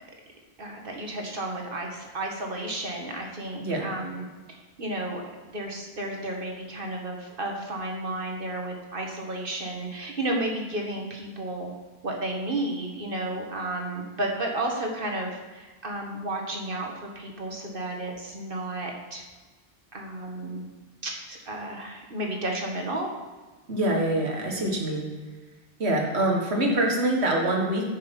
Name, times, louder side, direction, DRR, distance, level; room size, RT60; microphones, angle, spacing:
voice 1, 0.6-4.3 4.8-5.2 5.5-11.7 12.0-19.2 19.9-20.7 21.0-23.1, right 1 dB, 55° right, 1 dB, 1.8 m, -32 dB
voice 2, 3.6-3.9 23.7-25.1 25.8-27.9, right 1 dB, 85° right, 0 dB, 2.0 m, -25 dB
9.7 x 6.6 x 5.4 m, 1.3 s
omnidirectional pair, 1.1 m